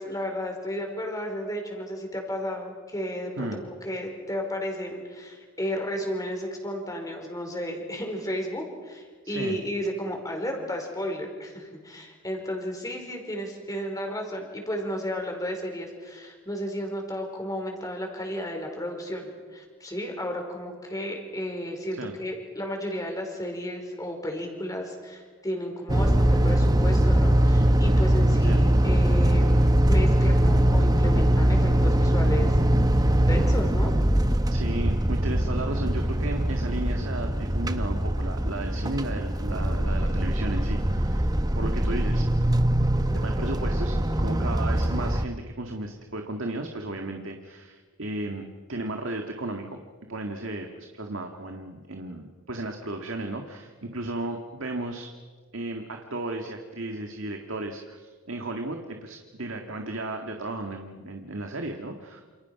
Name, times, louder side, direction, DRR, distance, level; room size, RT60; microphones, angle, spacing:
voice 1, 0.0-32.6 33.2-33.9, equal, 15° left, 3 dB, 5.1 m, -33 dB
voice 2, 9.2-9.6 22.0-22.1 28.4-28.6 34.5-42.2 43.1-48.4 48.7-49.8 50.1-55.1 55.5-62.2, right 2 dB, 65° right, 4 dB, 2.0 m, -34 dB
sound 1, 25.9-45.2, right 1 dB, 20° right, 1.0 m, -22 dB
28.5 x 28.5 x 6.0 m, 1.5 s
head